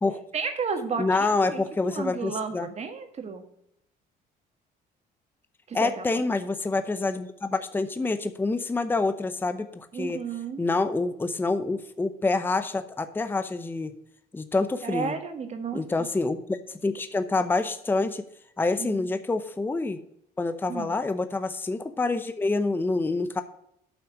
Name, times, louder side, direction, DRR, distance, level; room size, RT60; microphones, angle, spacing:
voice 1, 0.3-1.2 1.5-3.5 5.7-6.2 9.9-10.6 14.8-16.1 18.8-19.1 20.7-20.9, right 5 dB, 40° right, 7 dB, 1.6 m, -33 dB
voice 2, 1.0-2.7 5.7-10.2 10.6-13.9 14.3-15.1 15.7-16.6 16.8-18.2 18.6-20.0 20.4-23.4, left 3 dB, 10° left, 9 dB, 0.7 m, -27 dB
8.7 x 5.8 x 6.3 m, 0.74 s
cardioid pair, 110°, 17 cm